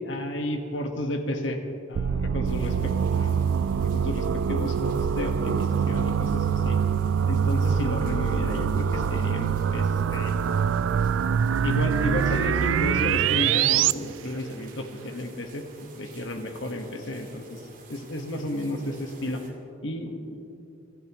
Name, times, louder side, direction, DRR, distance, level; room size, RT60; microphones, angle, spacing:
voice 1, 0.0-1.6 1.9-6.8 7.3-10.3 11.3-17.6 17.9-19.4 19.8-20.4, left 1 dB, 75° left, 4 dB, 1.5 m, -32 dB
sound 1, 2.0-13.9, right 7 dB, 90° right, 0.3 m, -24 dB
sound 2, 2.4-19.5, right 4 dB, 45° right, 2.1 m, -52 dB
24.0 x 13.5 x 3.1 m, 2.8 s
head